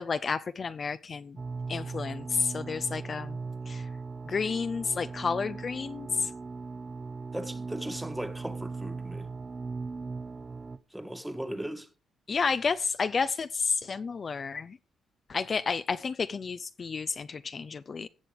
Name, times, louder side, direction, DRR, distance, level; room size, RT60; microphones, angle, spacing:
voice 1, 0.0-1.4 1.7-3.4 3.7-3.9 4.3-6.3 12.3-14.8 15.3-18.1, left 5 dB, 40° left, 0.5 m, -31 dB
sound 1, 1.4-10.8, right 4 dB, 30° right, 0.7 m, -38 dB
voice 2, 7.3-9.3 10.9-11.9, right 1 dB, 5° right, 1.5 m, -37 dB
17.0 x 6.6 x 3.5 m
cardioid pair, 90°, 0 cm